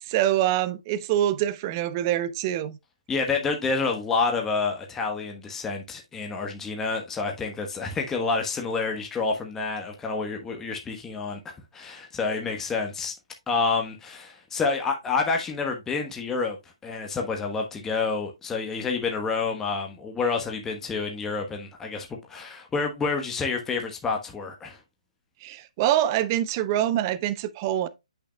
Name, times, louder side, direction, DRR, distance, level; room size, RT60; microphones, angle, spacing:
voice 1, 0.0-2.8 25.4-27.9, right 12 dB, 30° right, 0.7 m, -25 dB
voice 2, 3.1-13.1 13.5-16.6 16.8-24.8, left 4 dB, 10° left, 1.2 m, -28 dB
8.4 x 6.0 x 2.3 m
figure-of-eight pair, 140°, 4 cm